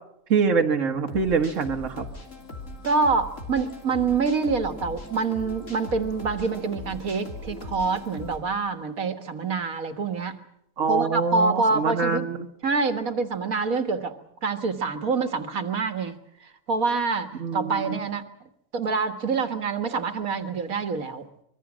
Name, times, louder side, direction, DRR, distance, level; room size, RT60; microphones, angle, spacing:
voice 1, 0.3-2.1 10.8-12.5 17.4-17.8, right 5 dB, 65° right, 3 dB, 1.8 m, -24 dB
sound 1, 1.1-8.4, left 2 dB, 65° left, 3.6 m, -39 dB
voice 2, 2.8-10.4 10.9-12.3 12.6-18.2 18.7-21.3, right 4 dB, 80° right, 8 dB, 2.0 m, -26 dB
25.0 x 23.0 x 6.2 m, 0.74 s
omnidirectional pair, 1.4 m